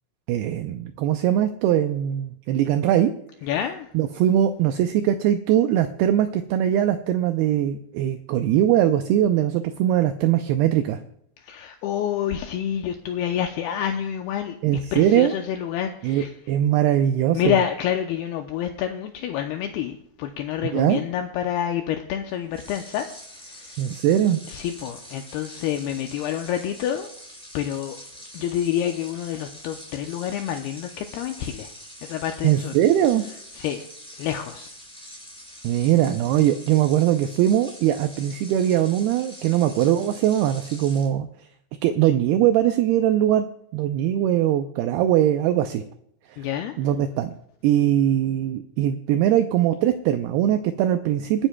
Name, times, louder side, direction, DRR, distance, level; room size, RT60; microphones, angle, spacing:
voice 1, 0.3-3.1 3.9-11.0 14.6-15.3 16.0-17.6 20.6-21.0 23.8-24.4 32.4-33.2 35.6-41.3 41.8-43.5 43.7-45.8 46.3-46.5 46.8-47.3 47.6-51.5, right 11 dB, 85° right, 8 dB, 2.3 m, -21 dB
voice 2, 3.5-3.9 11.5-14.6 14.9-16.3 17.3-23.1 24.5-27.1 27.5-28.0 28.3-31.7 32.0-32.7 33.6-33.8 34.2-34.7 46.4-46.7, left 10 dB, 80° left, 5 dB, 2.4 m, -28 dB
sound 1, 22.5-41.1, equal, ahead, 4.3 m, -44 dB
28.0 x 10.0 x 2.2 m, 0.70 s
omnidirectional pair, 5.0 m